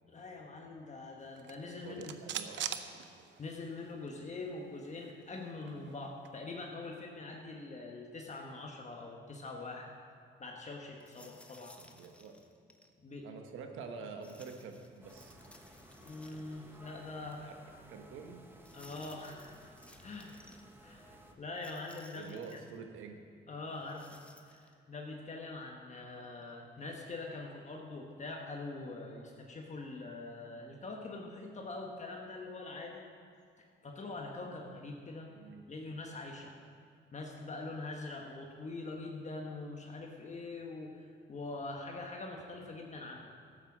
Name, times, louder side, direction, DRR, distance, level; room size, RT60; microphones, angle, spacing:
voice 1, 0.1-2.2 3.4-9.9 10.4-11.7 13.0-13.3 16.0-17.5 18.7-19.5 20.0-20.3 20.8-22.6 23.5-24.2 24.5-33.1 33.8-35.3 35.7-36.6 37.1-43.3, left 3 dB, 35° left, 0 dB, 1.3 m, -44 dB
sound 1, 1.3-3.8 4.1-4.2 4.5-6.4, right 9 dB, 65° right, 0.7 m, -43 dB
voice 2, 1.8-2.9 11.8-12.3 13.2-15.4 17.4-17.5 17.9-18.4 22.1-23.2 35.3-35.6, right 5 dB, 85° right, 4 dB, 1.3 m, -47 dB
sound 2, 11.0-12.9 14.2-16.8 17.1-17.2 18.6-20.6 21.5-22.8 23.7-24.7, left 1 dB, 5° left, 1.0 m, -60 dB
sound 3, 15.0-21.3, right 1 dB, 10° right, 1.4 m, -57 dB
13.0 x 8.7 x 6.1 m, 2.2 s
cardioid pair, 90°, 20 cm